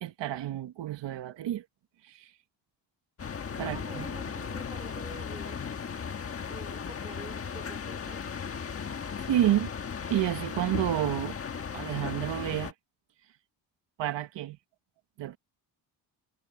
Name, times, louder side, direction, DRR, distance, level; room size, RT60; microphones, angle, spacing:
voice 1, 0.0-1.6 2.0-2.3 3.6-4.0 9.2-9.7 10.1-11.4 11.7-12.7 14.0-14.6 15.2-15.4, right 12 dB, 85° right, 1.5 m, -30 dB
sound 1, 3.2-12.7, left 6 dB, 30° left, 1.5 m, -36 dB
voice 2, 3.6-5.6 6.5-8.2, right 2 dB, 15° right, 3.8 m, -47 dB
wide cardioid pair, 170°, 42 cm